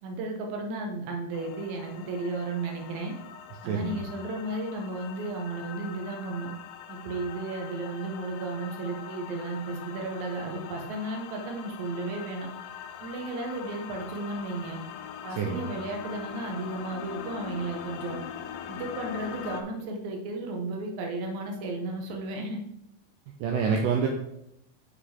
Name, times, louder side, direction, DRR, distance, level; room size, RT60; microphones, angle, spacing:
voice 1, 0.0-3.1 3.6-6.5 6.9-12.5 13.0-14.8 15.2-18.2 18.7-22.6, right 2 dB, 65° right, 2 dB, 2.0 m, -34 dB
sound 1, 1.3-19.6, left 9 dB, 80° left, 2.1 m, -42 dB
voice 2, 3.7-4.0 15.4-15.7 23.4-24.1, right 6 dB, 85° right, 2 dB, 1.9 m, -27 dB
6.8 x 4.9 x 4.3 m, 0.80 s
omnidirectional pair, 4.5 m